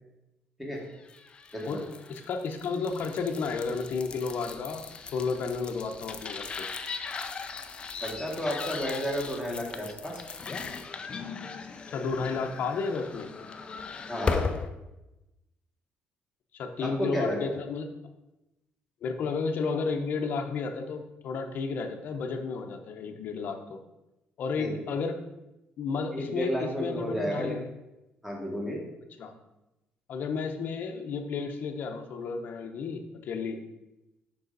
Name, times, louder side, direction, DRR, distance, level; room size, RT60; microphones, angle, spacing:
sound 1, 1.0-14.7, left 4 dB, 25° left, 0.4 m, -38 dB
voice 1, 1.7-6.7 11.9-13.3 16.5-17.9 19.0-23.8 24.4-25.2 25.8-27.6 29.2-29.3 30.1-33.6, left 4 dB, 50° left, 6 dB, 0.8 m, -32 dB
voice 2, 8.0-10.2 14.1-14.5 16.8-17.5 24.6-24.7 26.1-27.5 28.2-28.8, equal, 5° right, -2 dB, 1.6 m, -32 dB
6.8 x 5.5 x 3.9 m, 0.97 s
cardioid pair, 160°, 4 cm